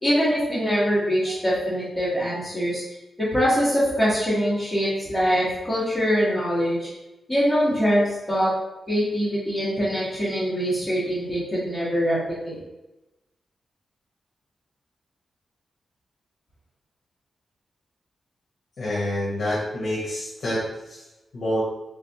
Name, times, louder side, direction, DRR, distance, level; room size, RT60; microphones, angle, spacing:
voice 1, 0.0-2.8 3.2-6.9 7.3-8.5 8.9-12.2 12.4-12.6, equal, ahead, -9 dB, 1.2 m, -23 dB
voice 2, 18.8-20.6 20.9-21.0 21.3-21.6, left 1 dB, 55° left, -7 dB, 0.8 m, -27 dB
3.4 x 3.3 x 2.8 m, 0.97 s
wide cardioid pair, 170°, 0 cm